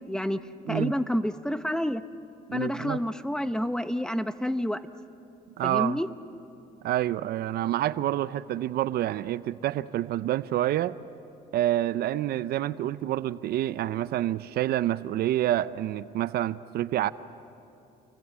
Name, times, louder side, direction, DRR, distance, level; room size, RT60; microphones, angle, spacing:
voice 1, 0.0-2.0 2.5-4.8 5.6-6.1, equal, 5° left, 11 dB, 0.8 m, -29 dB
voice 2, 2.5-3.0 5.6-6.0 6.8-11.0 11.5-17.1, right 13 dB, 65° right, 15 dB, 0.6 m, -28 dB
29.5 x 23.0 x 8.3 m, 2.7 s
cardioid pair, 110°, 17 cm